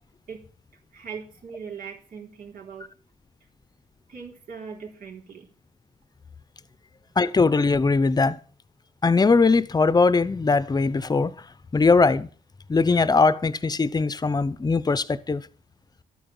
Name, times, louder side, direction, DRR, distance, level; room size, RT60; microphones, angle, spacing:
voice 1, 0.9-2.9 4.1-5.5, right 6 dB, 70° right, 3.8 m, -40 dB
voice 2, 7.2-8.4 9.0-11.3 11.7-12.3 12.7-15.5, left 4 dB, 25° left, 0.8 m, -20 dB
12.5 x 8.9 x 7.2 m
cardioid pair, 90°, 15 cm